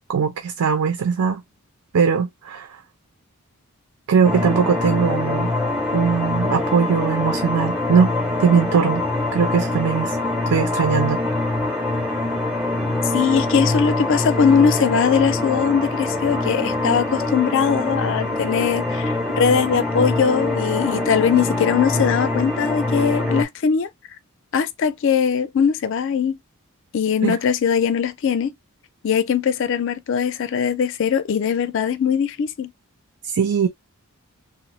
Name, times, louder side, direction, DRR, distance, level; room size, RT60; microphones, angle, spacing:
voice 1, 0.1-1.4 1.9-2.8 4.1-5.5 5.9-8.1 8.4-9.1 9.3-10.2 10.5-11.2 27.2-27.4 33.2-33.7, right 6 dB, 80° right, 0.5 m, -20 dB
sound 1, 4.2-23.4, left 2 dB, 5° right, 0.5 m, -24 dB
voice 2, 13.1-23.9 24.5-26.4 26.9-28.5 29.0-32.7, left 7 dB, 55° left, 0.4 m, -20 dB
3.0 x 2.0 x 2.9 m
head